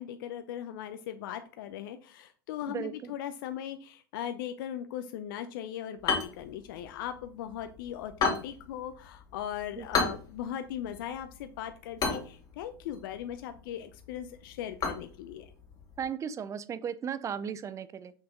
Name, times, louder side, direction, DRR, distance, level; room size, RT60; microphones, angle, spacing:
voice 1, 0.0-15.5, left 10 dB, 60° left, 9 dB, 0.7 m, -39 dB
sound 1, 6.0-16.1, left 5 dB, 30° left, 2.8 m, -36 dB
voice 2, 9.8-10.1 16.0-18.1, right 8 dB, 25° right, 15 dB, 0.7 m, -36 dB
6.6 x 5.6 x 3.8 m, 0.38 s
hypercardioid pair, 95°, 13 cm